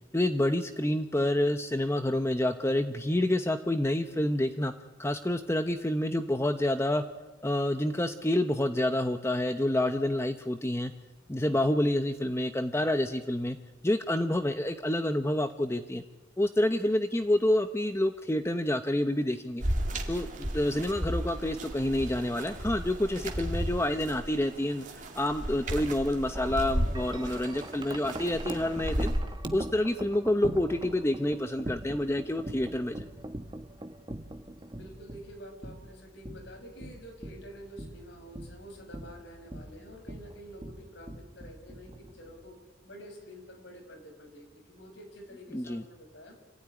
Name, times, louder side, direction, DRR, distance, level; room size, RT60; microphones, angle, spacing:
voice 1, 0.1-4.7 5.0-7.0 7.4-10.9 11.3-13.6 13.8-16.0 16.4-19.6 20.1-20.3 20.5-29.1 29.5-33.0 45.5-45.8, left 1 dB, 15° left, 8 dB, 0.9 m, -28 dB
sound 1, 19.6-29.2, equal, 40° right, 3.0 m, -34 dB
Wind chime, 26.4-42.5, right 1 dB, 25° right, 1.4 m, -42 dB
voice 2, 34.7-42.6 42.8-46.4, equal, 65° left, 3 dB, 6.2 m, -48 dB
26.5 x 16.0 x 9.9 m, 1.1 s
head